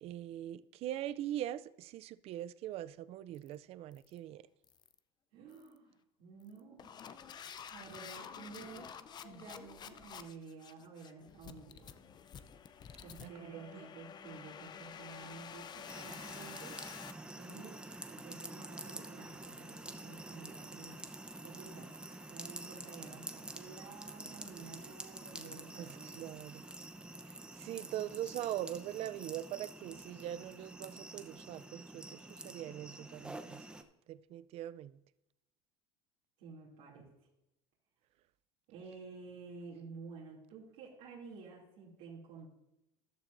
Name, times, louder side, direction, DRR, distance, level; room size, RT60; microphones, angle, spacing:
voice 1, 0.0-4.4 13.2-13.9 25.8-26.6 27.3-33.7 34.1-34.9, right 12 dB, 50° right, 0.5 m, -42 dB
sound 1, 3.3-3.5 3.9-4.2 4.6-5.0 5.5-5.8 6.4-17.1, left 7 dB, 35° left, 0.6 m, -50 dB
voice 2, 5.3-6.9 7.7-8.9 9.2-11.9 13.0-16.8 17.3-17.8 18.1-21.1 21.4-21.9 22.3-26.2 36.4-37.3 38.7-42.5, right 4 dB, 70° right, 2.8 m, -51 dB
sound 2, 15.9-33.8, right 2 dB, 5° right, 0.8 m, -48 dB
14.0 x 12.0 x 2.6 m
supercardioid pair, 115°, 13 cm